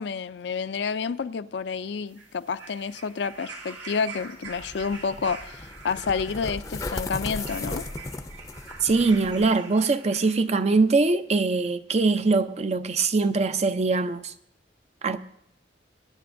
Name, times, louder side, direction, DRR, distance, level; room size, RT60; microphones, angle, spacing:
voice 1, 0.0-7.8, left 5 dB, 65° left, 0.4 m, -29 dB
sound 1, 2.1-10.7 11.6-11.7, right 4 dB, 85° right, 2.4 m, -44 dB
sound 2, 4.4-9.5, left 2 dB, 20° left, 0.6 m, -36 dB
voice 2, 8.8-14.3 15.0-15.2, right 3 dB, 35° right, 0.5 m, -22 dB
23.5 x 10.0 x 2.6 m
head